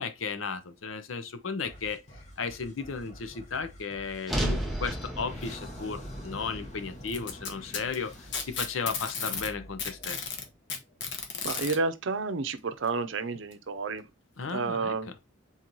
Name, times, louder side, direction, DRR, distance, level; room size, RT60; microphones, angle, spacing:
voice 1, 0.0-2.0 2.4-10.3 14.4-15.1, left 5 dB, 85° left, 0.7 m, -35 dB
sound 1, 1.6-11.0, left 1 dB, 35° left, 1.0 m, -49 dB
sound 2, 4.3-8.5, equal, ahead, 0.8 m, -35 dB
Packing tape duct tape, 7.1-9.5 9.8-11.8 12.9-13.0 13.5-13.6 14.5-14.6, left 5 dB, 60° left, 0.9 m, -34 dB
voice 2, 11.4-14.0 14.5-15.1, right 4 dB, 70° right, 0.6 m, -30 dB
4.0 x 3.0 x 3.8 m
head